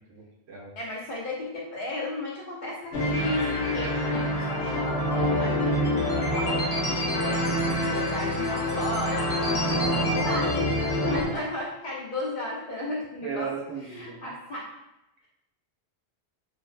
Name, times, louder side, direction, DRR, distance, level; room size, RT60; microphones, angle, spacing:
voice 1, 0.1-0.7 11.3-11.4 13.2-14.3, right 6 dB, 85° right, -2 dB, 0.9 m, -36 dB
voice 2, 0.8-13.5 13.9-14.7, left 1 dB, 55° left, -4 dB, 0.6 m, -35 dB
sound 1, 2.9-11.3, left 1 dB, 80° left, 0.9 m, -26 dB
2.5 x 2.0 x 2.4 m, 0.92 s
omnidirectional pair, 1.1 m